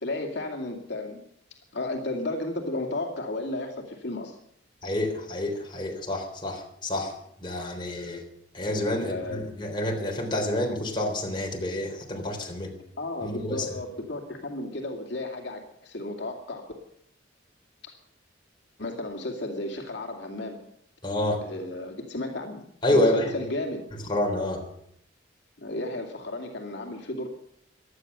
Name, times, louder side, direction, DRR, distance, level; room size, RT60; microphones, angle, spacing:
voice 1, 0.0-1.2 1.7-4.4 9.0-9.4 13.0-16.7 17.8-17.9 18.8-20.6 21.4-23.9 25.6-27.3, left 2 dB, 65° left, 1 dB, 2.4 m, -33 dB
voice 2, 4.8-7.1 7.4-8.2 8.5-12.7 13.2-13.7 21.0-21.4 22.8-23.3 24.1-24.6, left 1 dB, 25° left, 0 dB, 3.5 m, -28 dB
17.5 x 12.0 x 6.8 m, 0.72 s
head